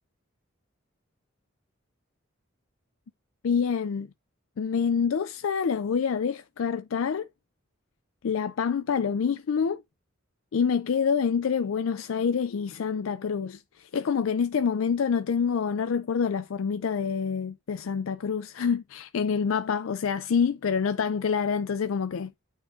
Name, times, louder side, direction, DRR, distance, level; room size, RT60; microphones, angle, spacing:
voice 1, 3.4-4.1 4.6-7.3 8.2-9.8 10.5-22.3, left 6 dB, 80° left, 0.4 m, -27 dB
9.4 x 3.6 x 3.8 m
head